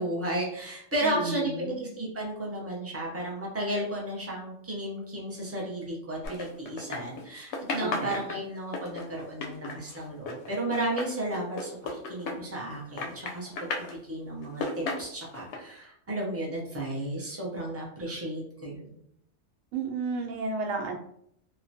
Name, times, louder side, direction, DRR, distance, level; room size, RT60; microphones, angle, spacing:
voice 1, 0.0-13.5 13.8-19.0, right 1 dB, 20° right, -4 dB, 0.4 m, -33 dB
voice 2, 1.0-1.9 7.8-8.1 19.7-20.9, right 3 dB, 85° right, 2 dB, 1.0 m, -32 dB
sound 1, 6.2-7.3 7.5-12.7 13.0-14.0 14.4-15.6, left 3 dB, 70° left, 0.8 m, -34 dB
3.0 x 2.1 x 2.7 m, 0.72 s
omnidirectional pair, 1.3 m